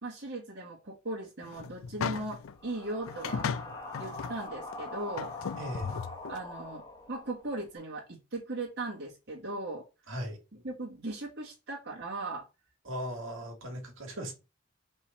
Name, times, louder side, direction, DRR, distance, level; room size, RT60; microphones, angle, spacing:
voice 1, 0.0-3.5 4.0-5.3 6.3-9.9 10.6-12.5, right 2 dB, 55° right, 1.7 m, -38 dB
sound 1, 1.4-2.5 3.1-4.4 4.7-4.8 5.2-6.4, left 6 dB, 80° left, 0.4 m, -36 dB
sound 2, 1.7-7.7, left 2 dB, 20° left, 1.3 m, -44 dB
voice 2, 5.6-5.9 10.1-10.4 12.8-14.3, equal, 75° right, 2.1 m, -38 dB
5.3 x 3.3 x 5.3 m
head